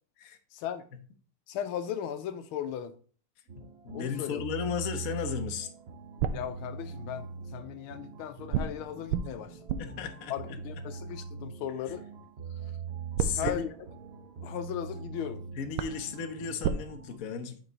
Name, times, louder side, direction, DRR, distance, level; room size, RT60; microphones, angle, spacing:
voice 1, 0.5-0.8 1.5-2.9 3.9-4.4 6.3-9.6 10.3-12.0 13.4-13.7 14.4-15.4, left 10 dB, 80° left, 1.4 m, -37 dB
sound 1, 3.5-17.2, right 6 dB, 60° right, 0.6 m, -43 dB
voice 2, 3.8-5.7 9.8-10.6 13.2-13.7 15.5-17.6, left 7 dB, 55° left, 1.0 m, -35 dB
sound 2, 5.8-7.3 8.5-11.8 13.1-15.1 15.4-15.5 15.8-16.8, right 7 dB, 80° right, 1.5 m, -35 dB
8.3 x 4.5 x 3.9 m
omnidirectional pair, 2.4 m